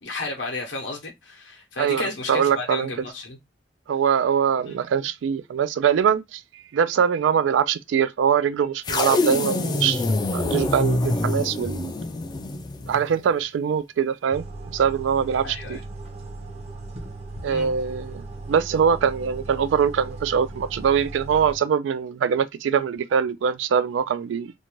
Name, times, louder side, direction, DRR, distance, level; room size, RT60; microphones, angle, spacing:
voice 1, 0.0-3.4 4.7-4.8 15.4-15.8 17.5-17.7, left 2 dB, 85° left, 0.8 m, -33 dB
voice 2, 1.8-2.9 3.9-6.4 6.7-10.0 10.3-11.9 12.9-14.5 14.7-15.8 17.4-24.5, right 7 dB, 85° right, 0.3 m, -23 dB
sound 1, 8.8-13.1, left 2 dB, 25° left, 0.3 m, -25 dB
sound 2, 14.3-21.6, right 2 dB, 35° right, 0.7 m, -38 dB
2.6 x 2.2 x 3.0 m
head